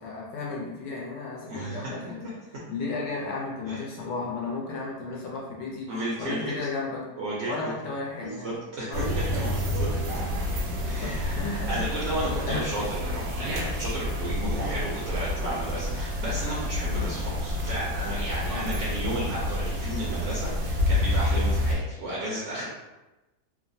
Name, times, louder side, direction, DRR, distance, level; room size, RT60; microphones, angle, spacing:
voice 1, 0.0-2.3 2.7-5.9 6.2-7.0 7.4-8.6 8.9-9.1 9.9-10.4 10.8-11.9 12.5-12.7 14.4-14.6 16.9-17.2 18.5-18.7, left 3 dB, 70° left, -3 dB, 1.1 m, -34 dB
voice 2, 1.5-2.1 3.7-3.8 5.9-6.5 7.2-7.7 8.2-9.9 10.9-22.7, right 1 dB, 65° right, -6 dB, 0.8 m, -33 dB
sound 1, 8.9-21.8, left 1 dB, 85° right, 1.3 m, -28 dB
3.1 x 2.1 x 2.5 m, 1.0 s
omnidirectional pair, 1.8 m